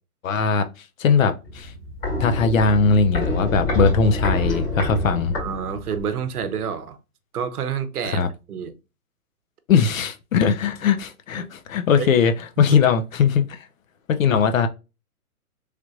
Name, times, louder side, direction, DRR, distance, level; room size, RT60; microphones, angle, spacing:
voice 1, 0.2-0.7 1.0-1.7 2.2-5.3 8.0-8.3 9.7-13.7 14.1-14.7, left 5 dB, 60° left, 0.6 m, -20 dB
Walk footsteps, 1.4-6.1 6.4-6.5, left 2 dB, 35° left, 2.1 m, -27 dB
voice 2, 5.4-7.0 7.3-8.7 11.4-11.5 12.0-12.1 12.6-12.8, right 7 dB, 75° right, 0.8 m, -29 dB
3.3 x 3.0 x 2.4 m
hypercardioid pair, 160°, 45 cm